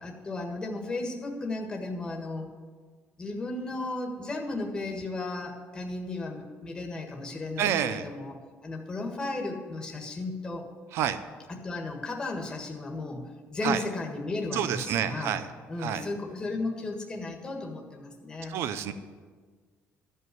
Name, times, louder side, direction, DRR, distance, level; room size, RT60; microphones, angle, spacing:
voice 1, 0.0-2.5 3.2-8.3 8.6-10.6 11.5-15.4 15.7-18.5, left 2 dB, 15° left, 1 dB, 1.5 m, -35 dB
voice 2, 7.6-8.1 10.9-11.2 13.6-13.8 14.5-15.5 15.8-16.1 18.5-18.9, right 9 dB, 60° right, 12 dB, 0.7 m, -28 dB
14.0 x 5.5 x 9.3 m, 1.5 s
cardioid pair, 170°, 5 cm